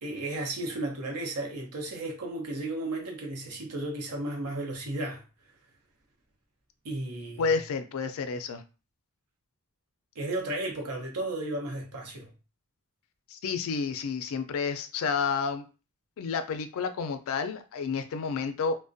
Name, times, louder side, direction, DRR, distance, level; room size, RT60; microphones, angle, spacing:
voice 1, 0.0-5.2 6.8-7.6 10.2-12.3, right 2 dB, 80° right, 0.7 m, -34 dB
voice 2, 7.4-8.6 13.3-15.7 16.2-18.7, left 5 dB, 65° left, 0.4 m, -30 dB
2.4 x 2.1 x 2.5 m
head